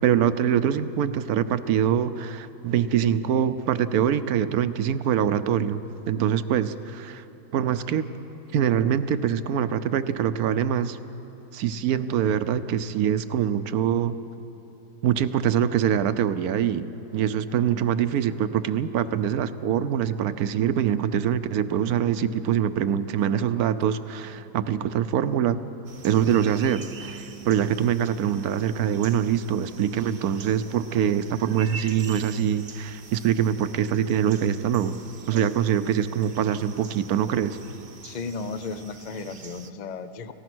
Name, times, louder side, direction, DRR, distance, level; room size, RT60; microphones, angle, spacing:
voice 1, 0.0-7.2 7.5-8.1 8.5-11.0 11.5-14.2 15.0-25.6 26.0-35.0 35.3-37.6, right 9 dB, 70° right, 12 dB, 1.1 m, -24 dB
sound 1, 25.8-39.7, right 5 dB, 45° right, 1.0 m, -44 dB
voice 2, 38.0-40.3, left 4 dB, 70° left, 11 dB, 0.4 m, -34 dB
29.0 x 15.0 x 6.2 m, 2.9 s
omnidirectional pair, 1.8 m